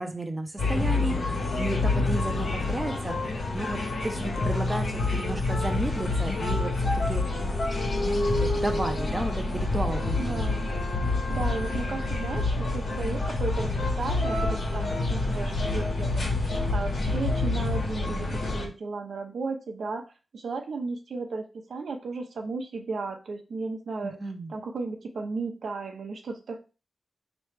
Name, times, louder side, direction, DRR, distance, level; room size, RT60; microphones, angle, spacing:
voice 1, 0.0-3.2 3.5-7.2 7.8-10.5 24.0-24.5, right 2 dB, 20° right, 5 dB, 0.6 m, -33 dB
sound 1, 0.6-18.7, left 2 dB, 70° left, 1.3 m, -27 dB
voice 2, 10.2-10.7 11.1-24.2 24.5-26.6, right 3 dB, 85° right, 4 dB, 0.7 m, -35 dB
4.3 x 3.0 x 3.3 m, 0.32 s
wide cardioid pair, 155°, 0 cm